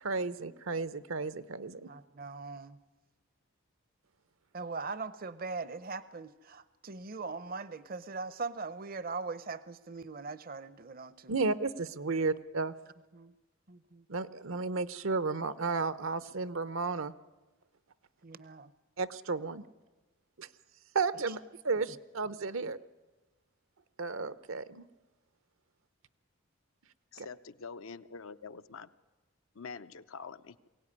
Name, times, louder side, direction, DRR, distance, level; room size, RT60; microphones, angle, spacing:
voice 1, 0.0-1.9 11.3-12.7 14.1-17.1 19.0-19.6 20.4-20.5 20.9-21.4 21.6-22.8 24.0-24.8 27.2-27.3, right 4 dB, 75° right, 0.8 m, -33 dB
voice 2, 1.9-2.8 4.5-11.4 12.1-12.2 13.1-13.3 13.7-14.0 18.2-18.7 21.3-21.4 21.9-22.0, right 4 dB, 45° right, 0.7 m, -41 dB
voice 3, 27.1-28.9 29.5-30.7, left 5 dB, 80° left, 0.7 m, -46 dB
22.5 x 17.0 x 9.7 m
head